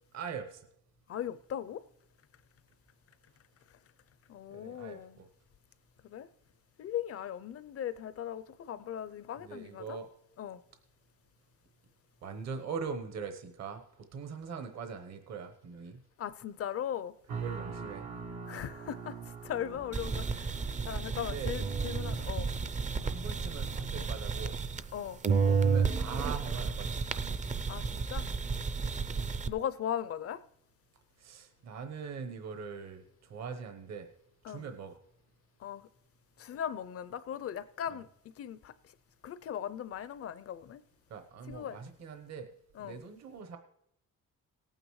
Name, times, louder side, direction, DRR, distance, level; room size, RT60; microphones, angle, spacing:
voice 1, 0.1-0.7 4.5-5.3 9.4-10.1 12.2-16.0 17.3-18.1 20.0-20.2 21.1-21.6 23.0-24.6 25.4-27.0 28.8-28.9 31.2-34.1 34.5-35.0 37.9-38.0 41.1-42.5 42.8-43.6, right 5 dB, 60° right, 7 dB, 1.1 m, -42 dB
voice 2, 1.1-1.8 4.3-5.2 6.0-6.3 6.8-10.0 10.4-10.6 16.2-17.1 18.5-20.5 20.8-22.5 24.9-25.2 27.7-28.3 29.5-30.4 34.4-34.6 35.6-35.9 36.4-38.1 38.4-38.7 39.2-40.8 41.5-41.8 42.8-43.0, left 9 dB, 50° left, 16 dB, 0.6 m, -38 dB
sound 1, 17.3-24.2, right 5 dB, 85° right, 1.2 m, -45 dB
sound 2, 19.9-25.0 25.2-29.5, right 5 dB, 25° right, 0.5 m, -32 dB
18.0 x 9.1 x 3.2 m, 0.75 s
cardioid pair, 90°, 30 cm